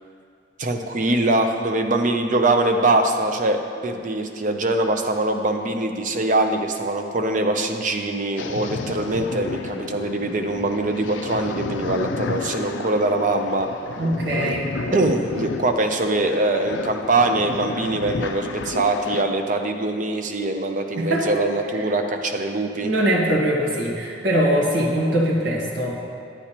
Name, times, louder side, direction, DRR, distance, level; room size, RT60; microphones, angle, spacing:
voice 1, 0.6-13.7 14.3-14.6 14.9-22.9, right 2 dB, 45° right, 5 dB, 0.6 m, -23 dB
sound 1, 8.4-19.2, left 4 dB, 90° left, 0.4 m, -32 dB
voice 2, 14.0-14.7 20.9-21.3 22.8-26.0, right 1 dB, 90° right, -4 dB, 1.6 m, -22 dB
10.0 x 8.3 x 2.9 m, 2.4 s
head